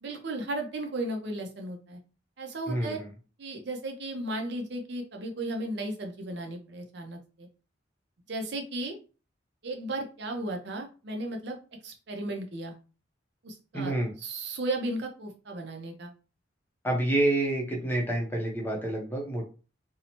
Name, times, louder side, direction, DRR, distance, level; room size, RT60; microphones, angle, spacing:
voice 1, 0.0-2.0 2.4-3.0 3.4-7.5 8.3-9.0 9.6-11.6 11.8-12.8 13.4-16.1, right 2 dB, 60° right, 3 dB, 0.5 m, -35 dB
voice 2, 2.7-3.0 13.7-14.1 16.8-19.4, right 1 dB, 10° left, 0 dB, 0.6 m, -28 dB
2.6 x 2.0 x 2.9 m, 0.35 s
head